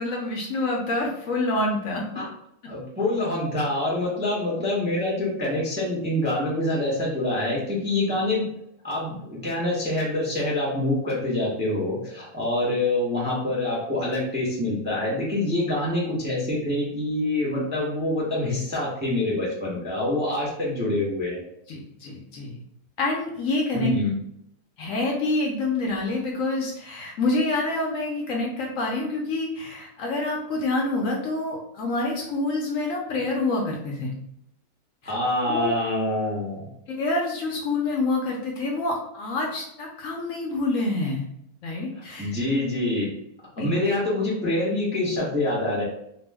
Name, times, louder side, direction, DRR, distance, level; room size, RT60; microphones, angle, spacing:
voice 1, 0.0-2.0 21.7-22.6 23.0-23.9 24.8-34.1 35.0-35.1 35.5-35.7 36.9-41.3 41.6-42.3 43.6-43.7, left 2 dB, 70° left, 0 dB, 0.9 m, -27 dB
voice 2, 2.7-8.5 8.8-21.5 23.7-24.2 35.0-36.7 42.0-43.1 43.6-45.8, left 1 dB, 10° right, -5 dB, 0.5 m, -26 dB
2.9 x 2.0 x 3.3 m, 0.75 s
omnidirectional pair, 1.7 m